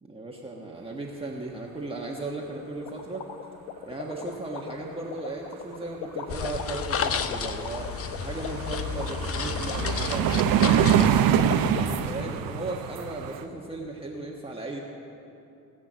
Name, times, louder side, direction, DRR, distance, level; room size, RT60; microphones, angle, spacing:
voice 1, 0.0-3.3 3.9-7.9 8.2-10.8 11.7-14.8, right 2 dB, 15° right, -2 dB, 1.3 m, -36 dB
sound 1, 2.9-12.0, left 8 dB, 85° left, 0.9 m, -37 dB
sound 2, 6.3-11.3, left 6 dB, 40° left, 0.8 m, -31 dB
sound 3, 7.3-7.4 7.7-13.4, right 9 dB, 75° right, 0.8 m, -25 dB
18.0 x 6.1 x 7.4 m, 2.8 s
supercardioid pair, 80°, 35 cm